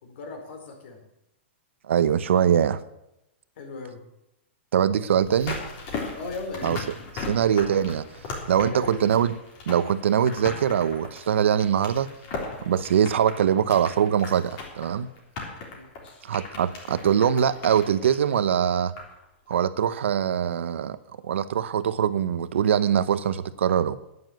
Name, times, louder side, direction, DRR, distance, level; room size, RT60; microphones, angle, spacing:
voice 1, 0.0-1.0 3.6-4.0 6.1-6.8 8.5-9.0 15.7-16.2, left 3 dB, 65° left, 4 dB, 4.3 m, -37 dB
voice 2, 1.9-2.8 4.7-5.6 6.6-6.8 7.3-8.1 8.5-9.4 9.7-12.1 12.6-15.1 16.2-18.9 19.5-21.0 21.2-24.0, right 8 dB, 90° right, 14 dB, 0.9 m, -23 dB
sound 1, 5.2-19.2 19.5-19.6, left 3 dB, 40° left, 3.7 m, -38 dB
10.5 x 9.9 x 7.8 m, 0.87 s
supercardioid pair, 160°, 6 cm